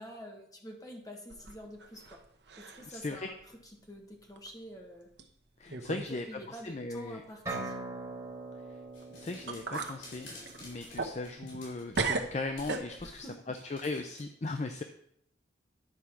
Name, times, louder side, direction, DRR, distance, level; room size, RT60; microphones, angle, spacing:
voice 1, 0.0-2.2 2.6-3.4 3.6-5.1 5.9-7.8 13.0-13.3, equal, 20° left, 1 dB, 1.5 m, -47 dB
sound 1, 1.3-2.2 2.5-3.0 3.4-3.5 4.4-4.5 5.2-5.3 5.7-6.1 6.4-6.5 9.0-9.1 9.5-10.0 10.4-11.7 11.9-13.2, right 3 dB, 65° right, 0.9 m, -36 dB
voice 2, 2.8-3.3 5.6-6.2 6.6-7.2 9.1-10.3 10.6-14.8, left 3 dB, 35° left, 7 dB, 0.5 m, -38 dB
sound 2, 7.5-11.2, right 2 dB, 15° right, 3.6 m, -42 dB
sound 3, 8.9-12.2 12.6-12.9 13.5-14.2, left 2 dB, 90° left, 4.0 m, -51 dB
10.5 x 4.8 x 5.8 m, 0.71 s
head